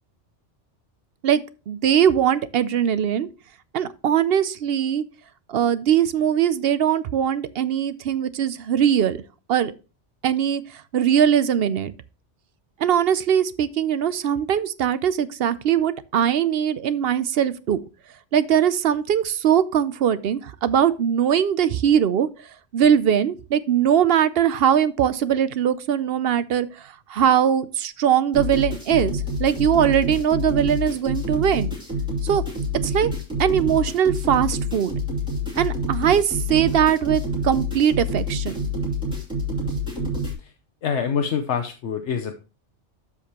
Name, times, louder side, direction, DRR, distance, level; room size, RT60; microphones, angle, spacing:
voice 1, 1.2-3.3 3.7-5.0 5.5-9.2 9.5-9.7 10.2-10.6 10.9-11.9 12.8-17.8 18.3-22.3 22.7-31.7 32.2-32.4 32.8-33.1 33.4-34.9 35.6-38.6, right 9 dB, 60° right, 0.7 m, -21 dB
sound 1, 28.3-40.3, left 1 dB, 5° right, 2.9 m, -27 dB
voice 2, 40.8-42.4, left 7 dB, 75° left, 1.1 m, -25 dB
12.5 x 4.9 x 2.9 m
omnidirectional pair, 1.2 m